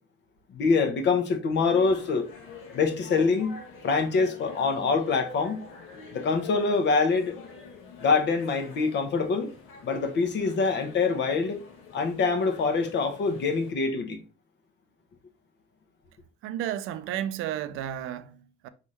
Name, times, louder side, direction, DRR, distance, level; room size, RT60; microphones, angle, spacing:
voice 1, 0.5-2.2 2.7-3.6 3.8-5.6 6.1-7.4 8.0-9.5 9.8-11.6 11.9-14.2, left 4 dB, 60° left, 1.0 m, -25 dB
sound 1, 1.6-13.7, left 3 dB, 75° left, 1.2 m, -47 dB
voice 2, 16.4-18.7, right 11 dB, 75° right, 0.5 m, -33 dB
4.1 x 3.6 x 3.1 m
cardioid pair, 95°, 21 cm